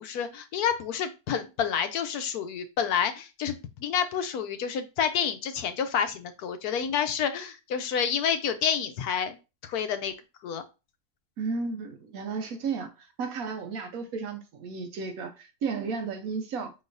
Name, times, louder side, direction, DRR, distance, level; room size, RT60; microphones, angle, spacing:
voice 1, 0.0-9.4 9.7-10.1 10.4-10.6, left 8 dB, 90° left, 1.2 m, -29 dB
voice 2, 11.4-16.7, right 5 dB, 70° right, 1.1 m, -33 dB
5.3 x 3.9 x 2.5 m
omnidirectional pair, 1.6 m